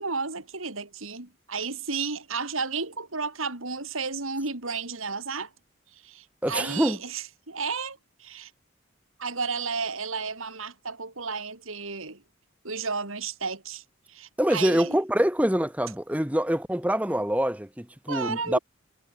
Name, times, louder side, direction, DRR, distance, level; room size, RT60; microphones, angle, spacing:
voice 1, 0.0-5.5 5.9-8.5 9.2-12.2 12.6-15.0 18.1-18.6, right 4 dB, 80° right, 3.7 m, -33 dB
voice 2, 6.4-7.0 14.4-18.6, equal, 5° right, 1.3 m, -25 dB
head